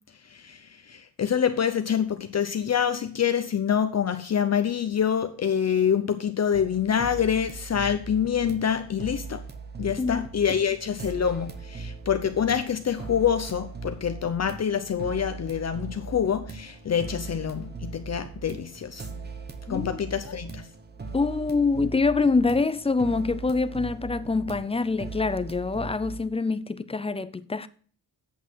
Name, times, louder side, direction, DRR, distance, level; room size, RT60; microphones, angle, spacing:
voice 1, 0.3-9.4 9.8-19.1 19.7-20.7, left 8 dB, 40° left, 0.7 m, -26 dB
sound 1, 6.5-26.2, right 4 dB, 25° right, 1.0 m, -39 dB
voice 2, 10.0-10.3 19.7-20.0 21.1-27.7, left 4 dB, 15° left, 0.4 m, -25 dB
8.3 x 8.0 x 4.5 m
wide cardioid pair, 165°, 41 cm